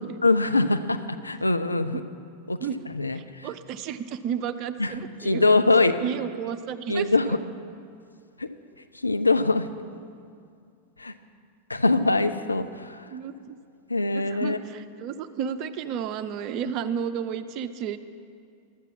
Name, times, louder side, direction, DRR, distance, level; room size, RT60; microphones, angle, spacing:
voice 1, 0.2-2.0 2.5-2.6 2.9-3.5 4.8-4.9 5.2-5.9 6.9-7.4 8.4-8.5 9.0-9.7 11.0-11.1 11.7-13.0 13.9-14.6, left 3 dB, 80° left, 9 dB, 0.5 m, -23 dB
voice 2, 3.1-5.5 6.0-7.4 13.1-13.6 14.1-18.0, right 8 dB, 40° right, 11 dB, 0.6 m, -32 dB
12.0 x 8.3 x 6.1 m, 2.3 s
figure-of-eight pair, 90°, 0 cm